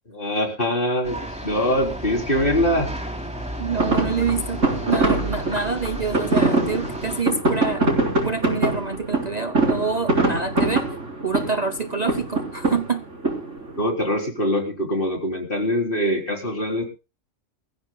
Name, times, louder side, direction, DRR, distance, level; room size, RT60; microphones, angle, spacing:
voice 1, 0.1-1.2 1.4-2.9 13.8-16.8, equal, 45° left, 2 dB, 4.0 m, -23 dB
sound 1, 1.0-7.2, right 1 dB, 5° right, 3.1 m, -33 dB
voice 2, 3.6-7.9 8.2-10.8 11.2-13.1, right 4 dB, 35° right, 9 dB, 0.9 m, -27 dB
sound 2, 3.7-13.8, right 2 dB, 75° right, 4.3 m, -23 dB
23.5 x 15.0 x 2.3 m, 0.31 s
omnidirectional pair, 1.3 m